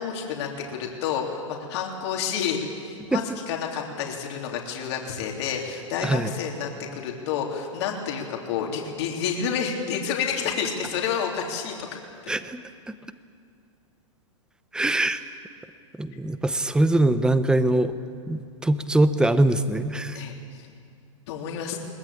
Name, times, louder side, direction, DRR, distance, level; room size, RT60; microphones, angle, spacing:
voice 1, 0.0-11.7 20.1-20.6 21.3-21.8, left 7 dB, 55° left, 0 dB, 3.5 m, -29 dB
voice 2, 6.0-6.3 12.3-12.6 14.7-15.2 16.0-17.9 18.3-20.2, right 1 dB, 5° right, 12 dB, 0.9 m, -22 dB
22.5 x 19.0 x 8.6 m, 2.3 s
hypercardioid pair, 130°, 16 cm